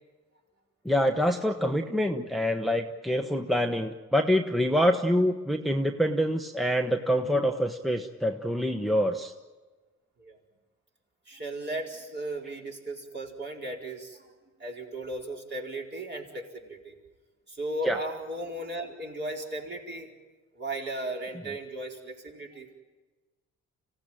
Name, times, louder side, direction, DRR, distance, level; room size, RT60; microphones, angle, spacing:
voice 1, 0.8-9.3 17.8-18.0, equal, ahead, 4 dB, 1.1 m, -26 dB
voice 2, 11.3-14.3 14.6-16.9 17.5-20.1 20.6-22.7, right 1 dB, 35° right, 0 dB, 4.6 m, -36 dB
25.5 x 16.5 x 8.9 m, 1.3 s
cardioid pair, 90°, 30 cm